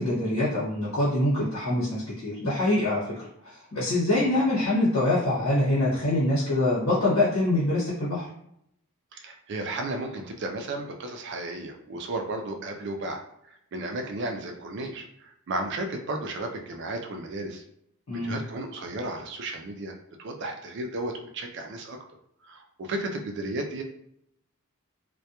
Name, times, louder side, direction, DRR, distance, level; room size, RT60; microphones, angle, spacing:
voice 1, 0.0-3.0 3.4-8.3 18.1-18.4, left 1 dB, 80° left, -9 dB, 1.1 m, -24 dB
voice 2, 9.1-13.2 13.7-17.6 18.1-19.9 20.2-22.0 22.5-23.8, right 2 dB, 55° right, 3 dB, 0.4 m, -34 dB
2.2 x 2.1 x 2.8 m, 0.75 s
head